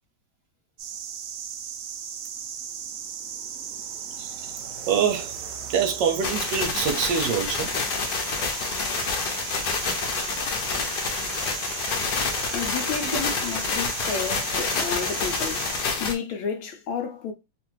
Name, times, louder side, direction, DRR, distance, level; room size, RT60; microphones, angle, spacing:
sound 1, 0.8-15.8, right 8 dB, 90° right, 0.7 m, -36 dB
voice 1, 4.9-5.3 5.7-7.7, right 7 dB, 70° right, 1.2 m, -24 dB
sound 2, 6.2-16.1, left 4 dB, 65° left, 1.2 m, -28 dB
voice 2, 12.5-15.7 16.0-17.3, left 6 dB, 90° left, 1.5 m, -31 dB
3.4 x 2.5 x 3.0 m
omnidirectional pair, 2.1 m